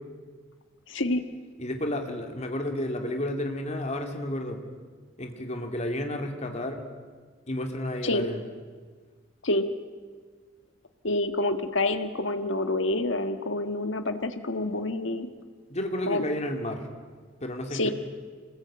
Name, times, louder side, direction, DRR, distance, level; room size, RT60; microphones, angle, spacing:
voice 1, 0.9-1.2 8.0-8.2 9.4-9.7 11.0-15.3 16.1-16.2 17.7-17.9, left 2 dB, 70° left, 8 dB, 1.6 m, -27 dB
voice 2, 1.6-4.6 5.2-6.8 7.5-8.4 15.7-16.9 17.4-17.9, left 1 dB, 35° left, 4 dB, 2.6 m, -31 dB
26.0 x 20.0 x 8.8 m, 1.5 s
head